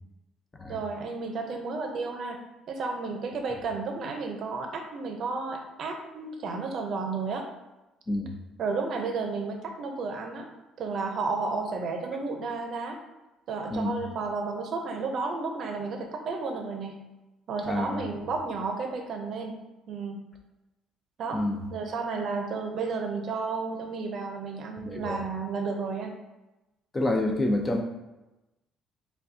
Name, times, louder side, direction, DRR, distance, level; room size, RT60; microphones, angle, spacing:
voice 1, 0.7-2.4 2.7-7.5 8.6-10.5 10.8-13.0 13.5-17.0 17.5-19.6 19.9-20.3 21.2-21.4 21.7-26.2, right 4 dB, 45° right, 3 dB, 0.6 m, -32 dB
voice 2, 17.6-18.0 21.3-21.6 24.8-25.2 26.9-27.8, left 1 dB, 15° left, 3 dB, 0.4 m, -28 dB
6.7 x 2.3 x 2.7 m, 1.0 s
cardioid pair, 155°, 0 cm